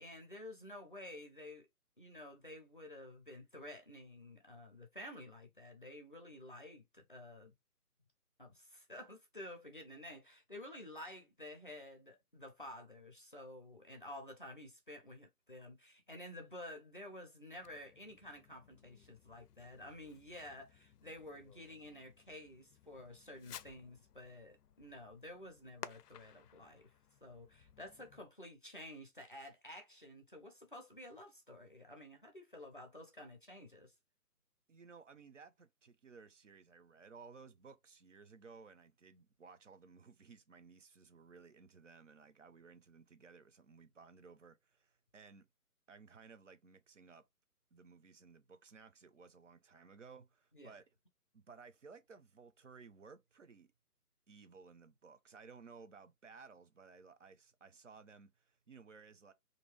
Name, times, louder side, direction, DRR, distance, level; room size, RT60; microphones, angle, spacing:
voice 1, 0.0-1.7 2.0-7.5 8.4-26.8 27.2-33.9 50.5-50.7, left 1 dB, 35° left, 0.5 m, -51 dB
Fireworks, 17.6-28.3, left 9 dB, 85° left, 0.5 m, -57 dB
voice 2, 34.7-45.5 45.9-47.2 47.7-50.8 51.3-53.7 54.3-59.3, right 5 dB, 55° right, 0.5 m, -58 dB
2.7 x 2.6 x 3.0 m
hypercardioid pair, 165°, 47 cm